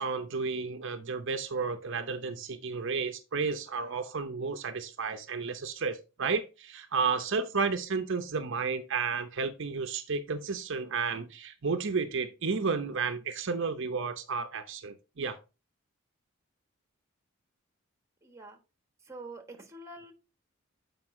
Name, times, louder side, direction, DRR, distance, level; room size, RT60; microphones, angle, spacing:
voice 1, 0.0-15.4, right 4 dB, 60° right, 8 dB, 0.7 m, -32 dB
voice 2, 18.2-18.6 19.0-20.1, right 2 dB, 15° right, 5 dB, 1.3 m, -46 dB
7.9 x 5.1 x 3.6 m, 0.30 s
head